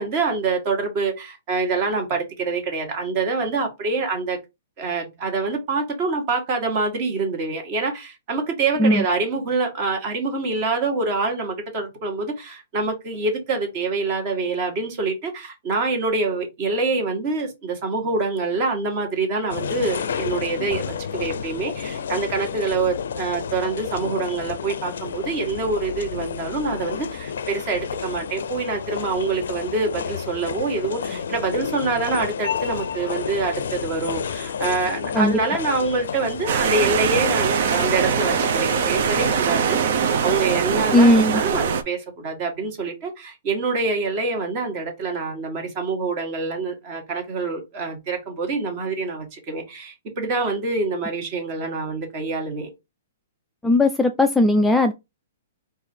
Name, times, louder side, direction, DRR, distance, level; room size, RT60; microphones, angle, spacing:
voice 1, 0.0-4.4 4.8-52.7, right 3 dB, 35° right, 1.4 m, -26 dB
sound 1, 19.5-39.4, left 7 dB, 80° left, 0.4 m, -31 dB
sound 2, 36.5-41.8, right 6 dB, 55° right, 0.6 m, -22 dB
voice 2, 40.9-41.4 53.6-54.9, left 1 dB, 5° left, 0.3 m, -17 dB
4.0 x 2.6 x 4.3 m
hypercardioid pair, 160°, 0 cm